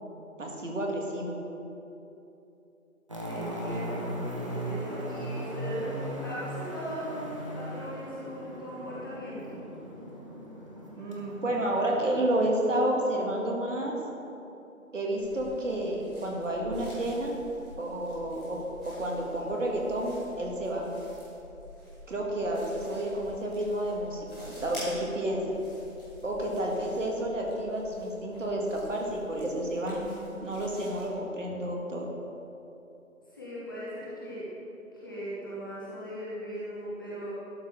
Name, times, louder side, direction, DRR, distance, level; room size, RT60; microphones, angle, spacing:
voice 1, 0.4-1.4 11.0-14.0 14.9-17.3 17.8-18.6 18.8-20.9 22.1-25.4 26.2-30.0 30.4-32.1, right 1 dB, 60° right, -1 dB, 1.8 m, -30 dB
sound 1, 3.1-12.5, equal, 20° right, 0.7 m, -38 dB
voice 2, 3.2-4.1 4.4-7.2 7.5-9.6 33.3-34.4 35.0-37.3, equal, 15° left, -9 dB, 0.9 m, -38 dB
sound 2, 15.2-31.1, left 1 dB, ahead, 2.0 m, -48 dB
11.5 x 4.8 x 4.9 m, 2.9 s
figure-of-eight pair, 150°, 43 cm